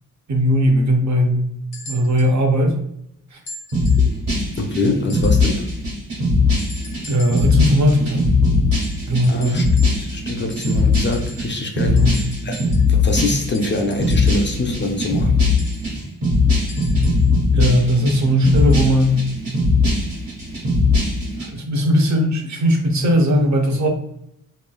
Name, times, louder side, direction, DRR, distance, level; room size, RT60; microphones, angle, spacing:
voice 1, 0.3-1.4 1.9-2.8 3.3-3.4 7.1-8.2 9.1-9.4 11.8-12.1 17.5-19.2 21.5-23.9, equal, 55° right, 3 dB, 0.6 m, -18 dB
sound 1, 1.7-2.4 3.5-4.1 5.1-5.6 6.6-7.7 8.7-10.2 10.5-11.6 12.0-14.5 15.6-17.3 18.6-18.9 19.8-19.9, left 2 dB, 65° left, 0.9 m, -40 dB
sound 2, 3.7-21.5, left 3 dB, 80° right, 1.4 m, -20 dB
voice 2, 4.6-5.7 9.3-9.7 10.0-12.0 12.5-15.4 21.2-21.3, left 2 dB, 35° left, 3 dB, 0.4 m, -24 dB
3.1 x 2.2 x 2.3 m, 0.76 s
cardioid pair, 90°, 34 cm